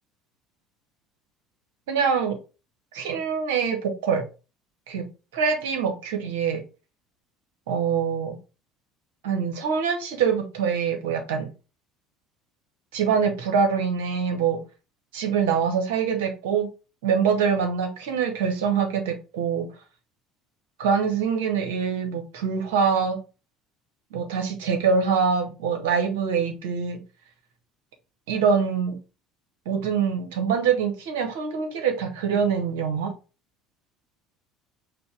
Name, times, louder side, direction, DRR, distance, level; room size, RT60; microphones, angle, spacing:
voice 1, 1.9-2.4 2.9-4.2 4.9-6.6 7.7-8.3 9.2-11.5 12.9-14.6 15.1-16.7 17.0-19.7 20.8-23.2 24.1-27.0 28.3-29.0 29.6-33.1, right 6 dB, 70° right, 1.0 m, -24 dB
5.2 x 2.2 x 4.6 m
figure-of-eight pair, 65°, 0 cm